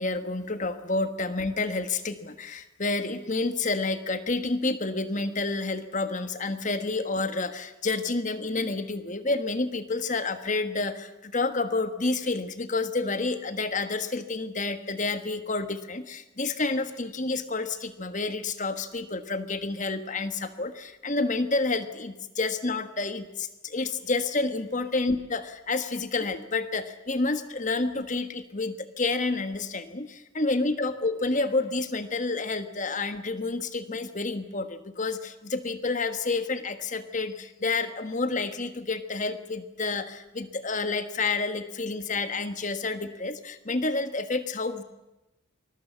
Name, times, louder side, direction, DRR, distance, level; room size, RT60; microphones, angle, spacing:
voice 1, 0.0-44.8, left 3 dB, 35° left, 10 dB, 1.4 m, -29 dB
26.0 x 20.5 x 7.5 m, 0.98 s
head